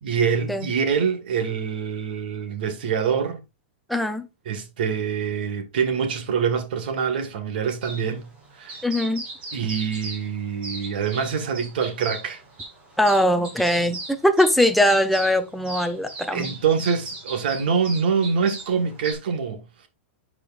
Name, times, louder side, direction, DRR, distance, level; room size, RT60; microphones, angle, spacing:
voice 1, 0.0-3.4 4.4-8.3 8.5-8.8 9.5-12.4 16.3-19.9, right 6 dB, 50° right, 1.7 m, -25 dB
voice 2, 3.9-4.3 8.8-9.2 13.0-16.5, left 1 dB, ahead, 0.4 m, -21 dB
sound 1, 7.8-19.1, right 2 dB, 15° right, 1.8 m, -38 dB
10.5 x 4.9 x 2.4 m
supercardioid pair, 180°, 6 cm